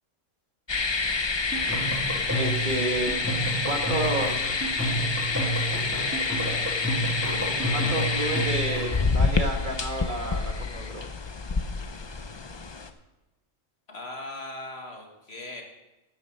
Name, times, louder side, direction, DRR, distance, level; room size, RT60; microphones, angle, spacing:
sound 1, 0.7-12.9, left 4 dB, 30° left, 0.5 m, -28 dB
sound 2, 1.5-9.1, right 1 dB, 10° right, 2.6 m, -30 dB
voice 1, 2.3-3.3 3.6-4.4 7.7-11.0, right 1 dB, 40° right, 2 dB, 1.6 m, -30 dB
voice 2, 13.9-15.6, left 2 dB, 55° left, 1 dB, 2.1 m, -39 dB
12.5 x 8.7 x 5.5 m, 1.0 s
omnidirectional pair, 1.3 m